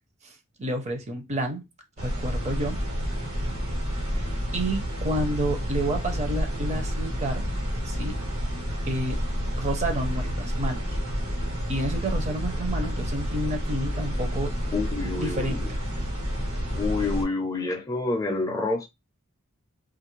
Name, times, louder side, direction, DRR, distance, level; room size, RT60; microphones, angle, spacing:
voice 1, 0.6-1.6 2.0-2.8 4.1-7.5 7.8-8.2 8.9-9.2 9.6-11.0 11.7-14.5 15.2-15.6, right 1 dB, 35° right, 0.6 m, -30 dB
sound 1, 2.0-17.2, equal, 85° right, 1.3 m, -29 dB
voice 2, 14.7-15.6 16.7-18.9, left 3 dB, 15° left, 0.5 m, -28 dB
2.6 x 2.4 x 3.1 m
head